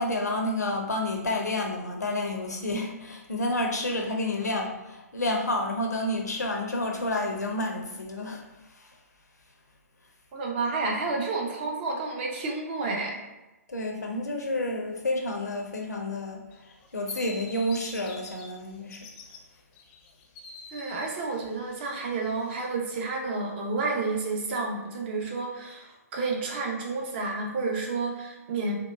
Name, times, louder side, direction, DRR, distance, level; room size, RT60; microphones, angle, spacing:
voice 1, 0.0-8.5 8.8-8.9 13.7-16.4 16.9-19.1, left 1 dB, 80° left, 2 dB, 0.6 m, -30 dB
voice 2, 10.3-13.2 20.7-28.8, right 3 dB, 40° right, 0 dB, 0.7 m, -30 dB
sound 1, 16.5-18.5 18.8-19.4 19.7-22.7, left 3 dB, 30° left, 0.5 m, -46 dB
3.7 x 2.3 x 2.3 m, 1.0 s
figure-of-eight pair, 120°, 9 cm